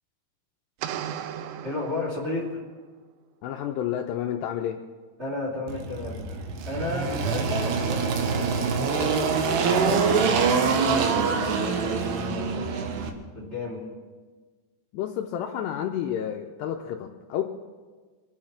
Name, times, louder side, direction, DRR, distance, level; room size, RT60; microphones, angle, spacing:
sound 1, 0.8-2.7, right 10 dB, 85° right, 2.5 m, -36 dB
voice 1, 1.6-2.6 5.2-6.2 6.6-12.6 13.0-13.8, left 2 dB, 20° right, -3 dB, 2.2 m, -34 dB
voice 2, 3.4-4.8 14.9-17.4, left 10 dB, 85° left, 3 dB, 2.5 m, -30 dB
Engine, 5.7-13.1, right 5 dB, 70° right, 2.8 m, -25 dB
25.0 x 8.7 x 5.9 m, 1.4 s
omnidirectional pair, 5.6 m